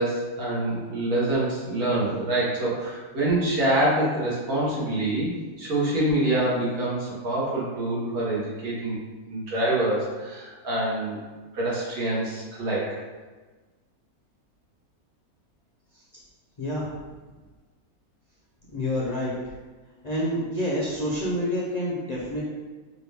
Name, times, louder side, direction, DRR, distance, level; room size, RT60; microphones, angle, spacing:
voice 1, 0.0-5.3 5.6-9.0 9.3-11.2 11.5-12.9, right 1 dB, 80° right, -7 dB, 1.8 m, -26 dB
voice 2, 16.6-16.9 18.7-19.3 20.0-22.4, equal, 55° left, -6 dB, 0.4 m, -27 dB
4.8 x 2.4 x 3.4 m, 1.3 s
omnidirectional pair, 1.6 m